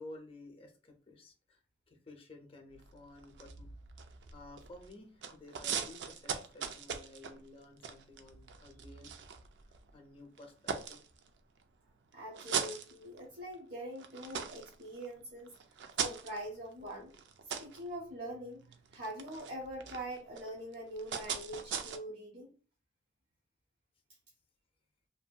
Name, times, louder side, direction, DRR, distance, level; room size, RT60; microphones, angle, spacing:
voice 1, 0.0-1.6 1.9-3.7 4.3-9.3 9.9-11.0, left 2 dB, 30° left, 4 dB, 0.5 m, -53 dB
Rapid Footsteps Upon Gravel, 2.7-4.9 5.2-9.9 10.4-11.6 12.1-13.6 13.9-22.0, right 7 dB, 80° right, 0.4 m, -41 dB
voice 2, 12.1-15.5 16.0-17.1 17.6-18.6 18.9-22.5, right 1 dB, 60° right, -3 dB, 0.8 m, -43 dB
2.8 x 2.6 x 2.2 m, 0.38 s
head